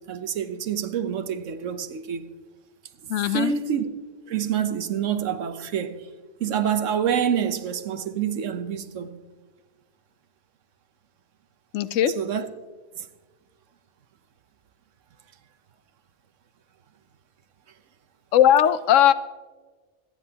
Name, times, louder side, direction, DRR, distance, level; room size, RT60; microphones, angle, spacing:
voice 1, 0.1-2.3 3.0-3.9 4.3-6.1 6.4-9.1 12.2-12.5 13.0-13.1, right 8 dB, 85° right, 1.2 m, -27 dB
voice 2, 3.1-3.5 11.7-12.1 18.3-19.1, left 10 dB, 85° left, 1.0 m, -18 dB
26.0 x 9.9 x 2.9 m
omnidirectional pair, 1.3 m